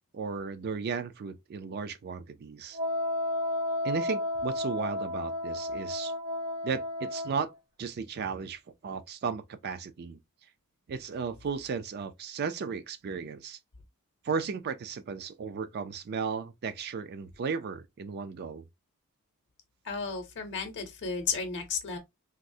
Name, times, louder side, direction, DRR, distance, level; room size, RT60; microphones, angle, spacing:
voice 1, 0.1-2.8 3.8-6.1 6.6-7.5 7.8-10.2 10.9-13.6 14.2-18.6, right 5 dB, 45° right, 0.3 m, -35 dB
Wind instrument woodwind instrument, 2.7-7.5, left 1 dB, 80° right, 1.4 m, -32 dB
voice 2, 19.8-22.0, left 5 dB, 55° left, 0.7 m, -33 dB
3.5 x 2.0 x 2.6 m
head